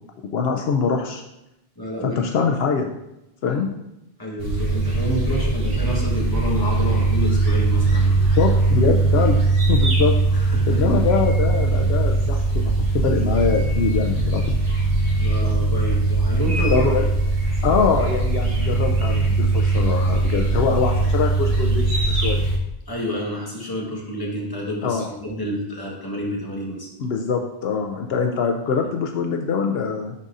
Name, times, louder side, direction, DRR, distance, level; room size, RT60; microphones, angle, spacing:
voice 1, 0.3-1.2 2.0-2.9 3.4-3.7 8.4-9.4 9.7-10.2 10.7-14.4 15.7-15.8 16.7-17.0 17.6-22.4 24.8-25.1 27.0-30.1, left 5 dB, 75° left, 3 dB, 0.8 m, -23 dB
voice 2, 1.8-2.2 3.5-3.6 4.2-8.4 10.3-11.0 15.2-17.1 17.7-17.8 22.9-26.9, equal, 20° left, -3 dB, 1.3 m, -29 dB
sound 1, 4.4-22.6, right 3 dB, 65° right, 1.8 m, -20 dB
10.5 x 4.0 x 2.5 m, 0.89 s
omnidirectional pair, 1.1 m